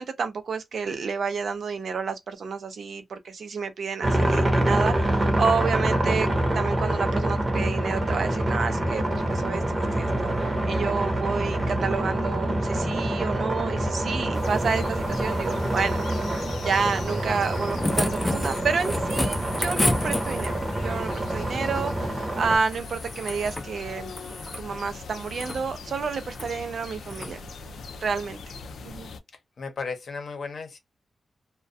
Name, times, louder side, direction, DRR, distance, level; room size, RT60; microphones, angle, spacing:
voice 1, 0.0-6.3 6.5-16.0 16.3-20.5 20.8-24.1 24.6-27.4 28.0-28.4 28.8-29.1, right 5 dB, 70° right, 0.5 m, -30 dB
sound 1, 4.0-22.6, right 1 dB, 25° right, 0.8 m, -26 dB
sound 2, 14.3-29.2, left 4 dB, 85° left, 0.4 m, -41 dB
sound 3, 17.4-20.7 22.7-23.7 24.0-24.7 25.2-25.6 26.3-26.5 27.1-27.3 28.7-28.8, left 1 dB, 15° left, 0.4 m, -30 dB
voice 2, 29.6-30.8, left 4 dB, 65° left, 0.8 m, -35 dB
2.3 x 2.2 x 2.5 m
wide cardioid pair, 100°, 0 cm